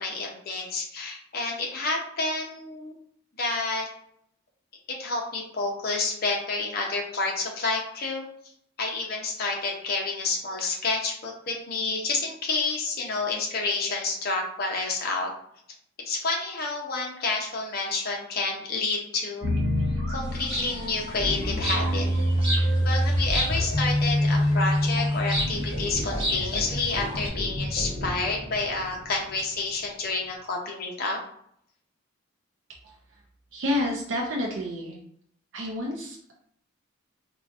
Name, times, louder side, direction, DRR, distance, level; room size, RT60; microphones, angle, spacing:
voice 1, 0.0-3.0 3.4-3.9 4.9-8.2 8.8-15.3 16.0-19.5 20.1-22.1 22.5-31.2, left 3 dB, 45° left, 0 dB, 0.7 m, -29 dB
sound 1, 19.4-29.5, equal, 80° right, 1.1 m, -27 dB
sound 2, 20.2-27.3, equal, 25° right, 0.7 m, -34 dB
voice 2, 33.5-35.0 35.5-36.3, left 1 dB, 60° right, -1 dB, 0.5 m, -29 dB
3.8 x 2.4 x 2.4 m, 0.68 s
head